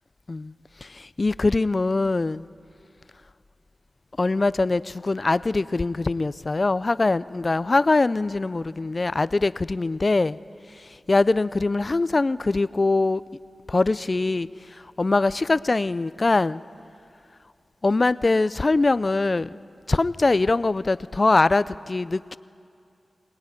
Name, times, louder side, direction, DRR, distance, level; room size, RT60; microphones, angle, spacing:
voice 1, 0.8-2.5 4.2-10.4 10.8-13.2 13.7-16.6 17.8-19.6 19.9-22.4, left 3 dB, 40° left, 17 dB, 0.5 m, -23 dB
22.5 x 19.5 x 9.7 m, 2.6 s
wide cardioid pair, 75°, 0 cm